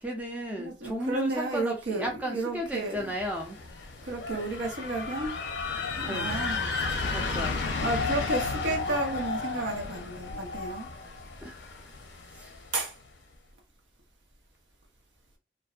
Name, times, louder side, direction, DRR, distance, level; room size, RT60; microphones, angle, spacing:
voice 1, 0.0-3.6 6.1-6.5 7.1-7.6 11.4-11.6 12.4-12.5, equal, 10° right, 0.4 m, -34 dB
voice 2, 0.6-3.1 4.0-5.4 6.0-6.7 7.8-10.9 12.7-12.9, right 2 dB, 75° right, 0.7 m, -32 dB
sound 1, 2.9-12.8, left 4 dB, 70° left, 0.6 m, -33 dB
2.5 x 2.0 x 2.3 m
head